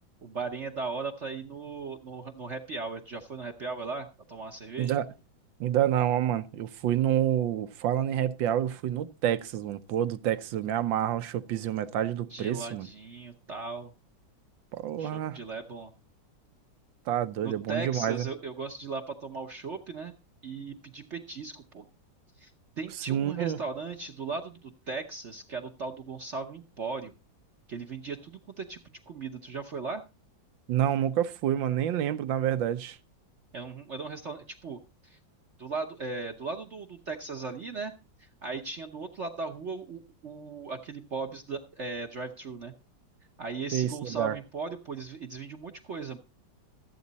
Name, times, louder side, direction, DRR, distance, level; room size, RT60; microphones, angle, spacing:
voice 1, 0.2-5.0 12.3-13.9 15.0-15.9 17.4-20.1 20.4-21.9 22.4-27.1 27.7-30.0 33.5-35.2 35.6-37.9 38.2-42.7 43.4-46.2, right 4 dB, 45° right, 1.0 m, -37 dB
voice 2, 5.6-12.9 14.7-15.4 17.1-18.2 23.1-23.6 30.7-33.0 43.7-44.4, right 11 dB, 75° right, 1.4 m, -28 dB
13.5 x 8.5 x 4.0 m
omnidirectional pair, 2.1 m